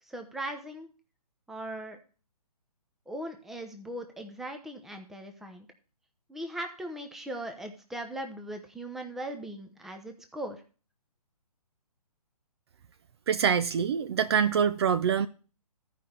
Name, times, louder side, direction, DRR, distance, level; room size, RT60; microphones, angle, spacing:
voice 1, 0.1-0.9 1.5-2.0 3.1-5.7 6.3-10.6, right 1 dB, ahead, 0.7 m, -39 dB
voice 2, 13.3-15.3, right 7 dB, 40° right, 0.5 m, -25 dB
14.0 x 5.2 x 4.2 m
hypercardioid pair, 145°, 20 cm